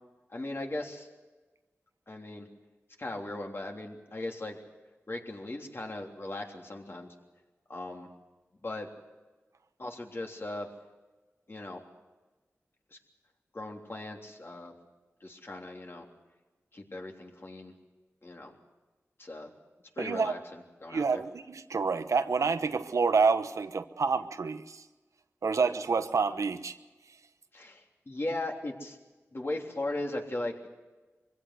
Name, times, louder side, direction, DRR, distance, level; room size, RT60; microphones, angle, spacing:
voice 1, 0.3-1.1 2.1-2.5 3.0-4.6 5.1-7.1 7.7-8.1 8.6-8.9 9.8-10.7 11.5-11.8 12.9-13.0 13.5-14.7 15.2-16.1 16.7-17.7 18.2-18.5 19.2-19.5 20.0-21.2 27.5-29.0 29.3-30.7, left 2 dB, 50° left, 1 dB, 3.3 m, -38 dB
voice 2, 20.0-20.3 20.9-24.8 25.4-26.7, right 5 dB, 85° right, 10 dB, 1.0 m, -28 dB
23.5 x 16.5 x 8.0 m, 1.2 s
cardioid pair, 50°, 5 cm